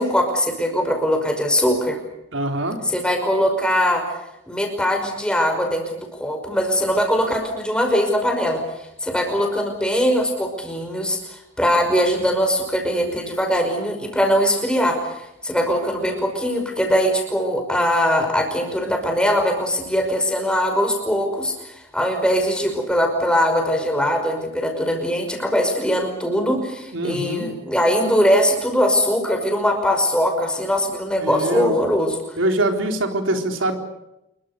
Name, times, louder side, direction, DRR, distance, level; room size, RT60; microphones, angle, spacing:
voice 1, 0.0-2.0 2.8-4.1 4.5-32.2, equal, 5° left, 3 dB, 5.5 m, -21 dB
voice 2, 2.3-2.8 26.9-27.5 31.2-31.8 32.4-33.8, right 1 dB, 85° right, 4 dB, 3.9 m, -23 dB
27.5 x 23.0 x 6.8 m, 0.88 s
head